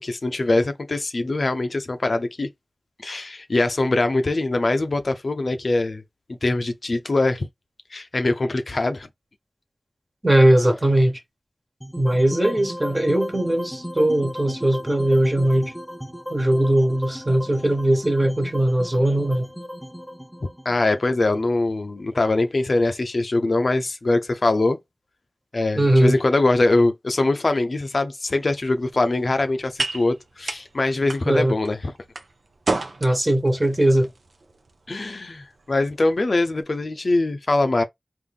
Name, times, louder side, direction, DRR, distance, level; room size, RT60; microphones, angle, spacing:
voice 1, 0.0-2.5 3.0-6.0 6.4-7.5 7.9-9.1 20.6-24.8 25.5-31.9 34.9-37.8, left 2 dB, 65° left, 0.6 m, -22 dB
voice 2, 10.2-11.2 12.0-15.7 16.3-19.5 25.8-26.2 31.3-31.6 33.0-34.1, right 1 dB, 25° right, 1.3 m, -19 dB
sound 1, 11.8-22.0, equal, ahead, 0.6 m, -35 dB
sound 2, 28.2-36.6, right 3 dB, 80° right, 0.6 m, -34 dB
3.7 x 2.5 x 3.5 m
wide cardioid pair, 75°, 0 cm